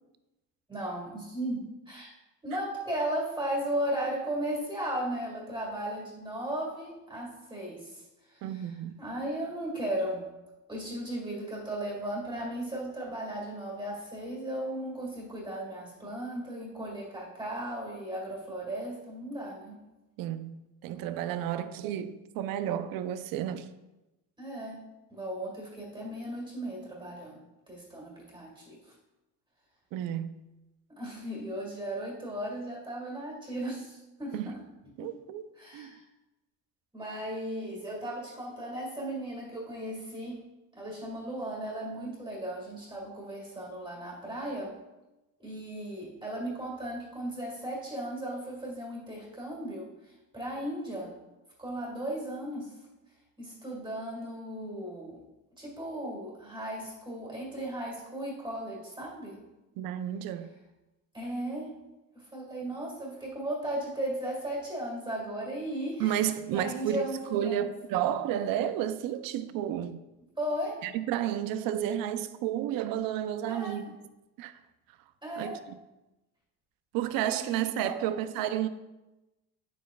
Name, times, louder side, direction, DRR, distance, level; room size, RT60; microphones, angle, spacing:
voice 1, 0.7-2.1 2.4-8.7 9.0-10.2 10.7-19.8 24.4-27.4 27.7-29.0 30.9-34.6 35.0-35.2 35.6-36.0 36.9-40.4 40.8-44.8 45.4-51.1 51.6-52.8 53.4-55.2 55.6-59.4 61.1-61.8 62.1-66.3 66.5-67.7 70.4-70.8 73.5-73.8 75.2-75.6 77.2-78.0, right 1 dB, 15° right, 1.9 m, -36 dB
voice 2, 8.4-9.0 20.2-23.7 29.9-30.4 34.3-34.5 35.0-36.0 59.8-60.6 66.0-70.0 70.8-74.0 74.4-74.6 75.4-75.8 76.9-78.7, right 11 dB, 70° right, 0.6 m, -32 dB
9.2 x 7.2 x 2.3 m
cardioid pair, 140°, 36 cm